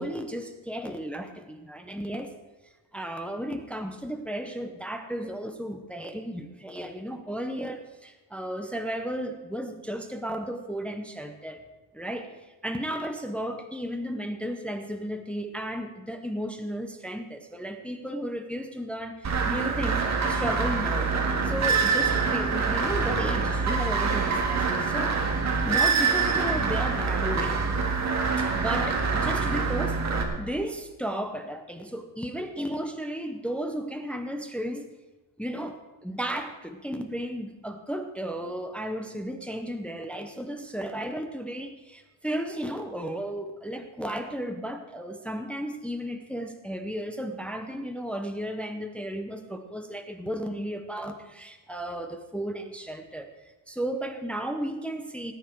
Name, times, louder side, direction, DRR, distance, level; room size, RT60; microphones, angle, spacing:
voice 1, 0.0-2.3 2.9-11.6 11.9-12.3 12.6-20.0 20.3-21.2 21.4-25.2 25.6-27.6 28.4-30.0 30.4-34.9 35.4-53.3 53.7-55.3, equal, 5° left, 6 dB, 0.7 m, -34 dB
sound 1, 19.2-30.2, right 5 dB, 35° right, 1.7 m, -25 dB
18.5 x 9.1 x 4.6 m, 1.1 s
cardioid pair, 170°, 46 cm